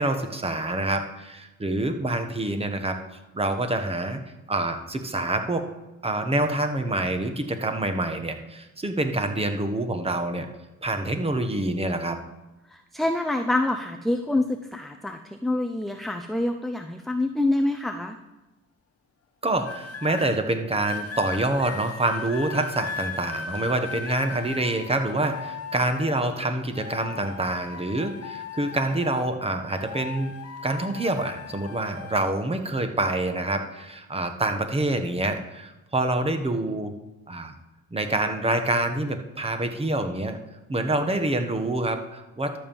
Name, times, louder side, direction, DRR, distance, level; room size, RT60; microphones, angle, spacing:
voice 1, 0.0-3.0 3.3-4.2 4.5-5.7 6.0-10.5 10.8-12.2 19.4-30.4 30.6-36.9 37.3-37.5 37.9-40.4 40.7-42.6, right 2 dB, 20° right, 7 dB, 1.3 m, -26 dB
voice 2, 12.7-18.2, left 2 dB, ahead, 4 dB, 0.6 m, -26 dB
sound 1, 19.6-20.3 20.8-26.4 26.7-29.4 29.7-32.2 33.0-33.3, left 5 dB, 50° left, 1.3 m, -37 dB
12.0 x 5.5 x 7.2 m, 1.0 s
cardioid pair, 90°, 30 cm